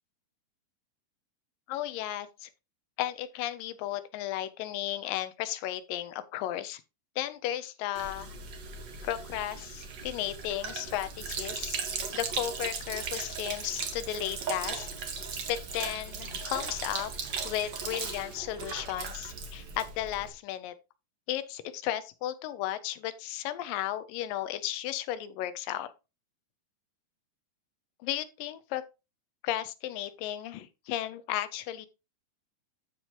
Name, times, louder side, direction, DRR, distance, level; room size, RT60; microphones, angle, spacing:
voice 1, 1.7-2.5 3.0-6.8 7.2-8.3 9.0-11.8 12.1-14.9 15.5-17.1 17.4-20.7 21.3-25.9 28.0-28.8 29.4-31.9, left 12 dB, 80° left, 2.2 m, -34 dB
Sink (filling or washing), 7.9-20.3, right 5 dB, 80° right, 1.0 m, -37 dB
13.0 x 4.8 x 2.9 m
omnidirectional pair, 4.1 m